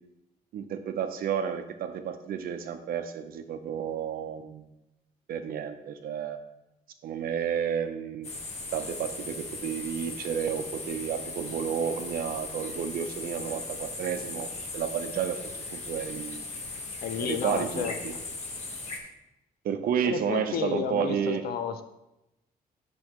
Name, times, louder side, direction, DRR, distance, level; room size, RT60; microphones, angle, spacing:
voice 1, 0.5-4.7 5.3-6.4 7.0-8.3 8.7-14.5 14.7-16.4 17.2-18.1 19.6-21.4, right 8 dB, 65° right, 8 dB, 0.7 m, -31 dB
sound 1, 8.2-19.0, left 3 dB, 45° left, 1.2 m, -38 dB
voice 2, 17.0-18.2 20.0-21.8, left 7 dB, 70° left, 9 dB, 0.7 m, -32 dB
8.6 x 6.2 x 3.0 m, 0.92 s
cardioid pair, 165°, 16 cm